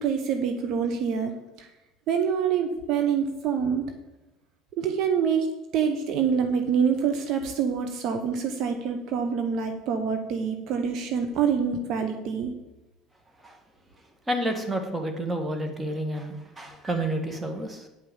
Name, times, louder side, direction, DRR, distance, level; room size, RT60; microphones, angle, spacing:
voice 1, 0.0-1.3 1.6-1.7 2.1-3.8 4.8-5.5 5.7-12.5, right 7 dB, 60° right, 6 dB, 1.0 m, -26 dB
voice 2, 14.3-17.9, right 1 dB, 20° right, 5 dB, 2.0 m, -30 dB
9.4 x 5.7 x 7.2 m, 0.99 s
hypercardioid pair, 65°, 0 cm